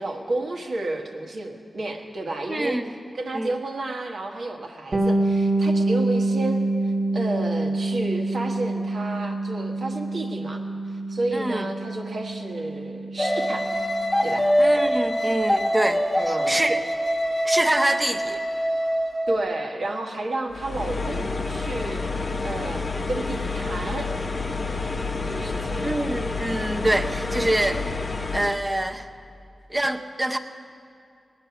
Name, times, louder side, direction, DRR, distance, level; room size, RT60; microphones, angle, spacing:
voice 1, 0.0-2.8 3.1-10.6 10.9-13.7 14.2-14.5 16.1-16.6 19.3-22.0 22.4-22.8 23.1-24.1 25.2-25.9, right 2 dB, 75° right, 1 dB, 1.5 m, -31 dB
voice 2, 2.5-2.8 3.3-3.5 11.3-11.7 14.6-16.8 17.4-18.4 25.8-27.9 28.3-29.1 29.7-30.4, right 1 dB, 15° right, 5 dB, 0.7 m, -25 dB
Bass guitar, 4.9-14.5, right 2 dB, 50° right, 1.4 m, -26 dB
sound 1, 13.2-19.5, equal, 10° left, 1.0 m, -24 dB
sound 2, 20.5-28.6, left 3 dB, 40° left, 0.8 m, -29 dB
20.0 x 9.0 x 5.9 m, 2.4 s
wide cardioid pair, 110°, 0 cm